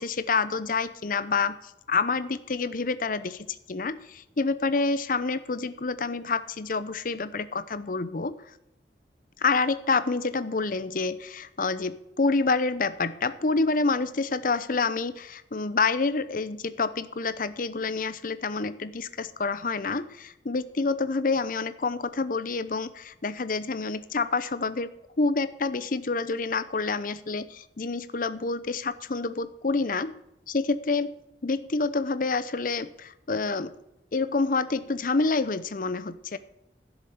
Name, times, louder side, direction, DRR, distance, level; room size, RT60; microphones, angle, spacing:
voice 1, 0.0-8.4 9.4-24.9 25.2-27.5 27.8-30.1 30.5-31.1 31.4-33.7 34.1-36.4, left 4 dB, 50° left, 14 dB, 0.7 m, -28 dB
12.0 x 7.0 x 8.6 m, 0.86 s
head